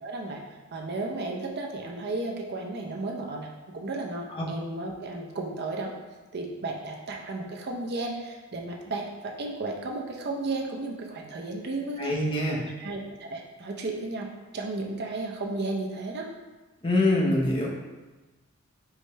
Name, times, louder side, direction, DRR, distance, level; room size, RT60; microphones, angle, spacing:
voice 1, 0.0-0.4 0.7-3.5 3.7-5.9 6.3-12.1 12.8-14.3 14.5-16.3, right 2 dB, 50° right, 0 dB, 0.6 m, -33 dB
voice 2, 12.0-12.6 16.8-17.7, left 1 dB, 25° left, -3 dB, 0.8 m, -24 dB
4.8 x 3.2 x 3.2 m, 1.2 s
head